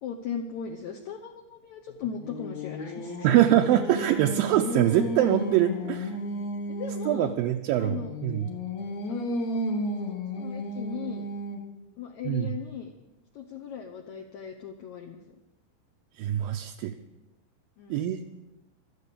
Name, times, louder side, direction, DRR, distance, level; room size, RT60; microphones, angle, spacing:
voice 1, 0.0-3.3 6.7-7.4 7.8-8.1 9.1-9.6 10.4-11.3 12.0-12.9 13.3-15.4 17.8-18.1, left 7 dB, 75° left, 3 dB, 1.7 m, -38 dB
Singing, 1.9-7.3 7.9-11.8, left 1 dB, 55° left, 2.2 m, -33 dB
voice 2, 3.2-6.1 7.1-8.5 12.3-12.5 16.2-16.9 17.9-18.2, right 12 dB, 80° right, 4 dB, 2.2 m, -24 dB
15.0 x 12.0 x 6.9 m, 1.0 s
omnidirectional pair, 4.6 m